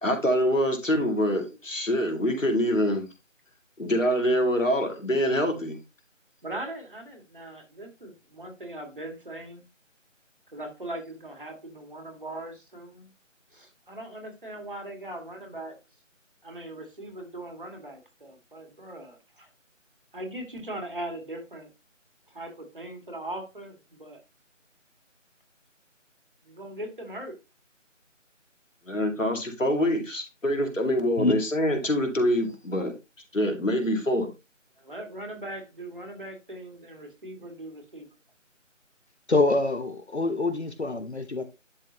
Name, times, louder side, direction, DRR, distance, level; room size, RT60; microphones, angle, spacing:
voice 1, 0.0-3.1 3.8-5.8 28.9-32.9 33.3-34.3, equal, 75° left, 2.3 m, -25 dB
voice 2, 6.4-9.6 10.5-13.1 13.5-15.8 16.4-19.5 20.1-21.7 22.3-24.2 26.4-27.4 34.8-38.1, right 1 dB, 40° right, 1.9 m, -40 dB
voice 3, 39.3-41.4, left 2 dB, 60° left, 1.0 m, -25 dB
11.0 x 3.9 x 2.8 m
figure-of-eight pair, 170°, 39 cm